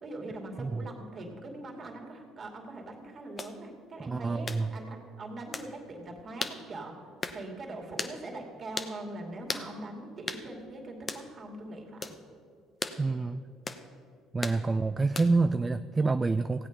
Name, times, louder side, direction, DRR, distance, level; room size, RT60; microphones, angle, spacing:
voice 1, 0.0-7.0 7.3-12.1, right 2 dB, 40° right, 1 dB, 2.6 m, -42 dB
sound 1, 3.4-3.5 4.5-4.6 5.5-5.7 6.4-6.6 7.2-7.4 8.0-8.2 8.8-8.9 9.5-9.7 10.3-10.4 11.1-11.3 12.0-12.2 12.8-13.0 13.7-13.8 14.4-14.6 15.1-15.4, left 4 dB, 30° left, 0.9 m, -36 dB
voice 2, 4.0-4.7 13.0-13.4 14.3-16.7, right 3 dB, 25° right, 11 dB, 0.4 m, -27 dB
16.0 x 8.5 x 5.2 m, 2.2 s
hypercardioid pair, 60°, 0 cm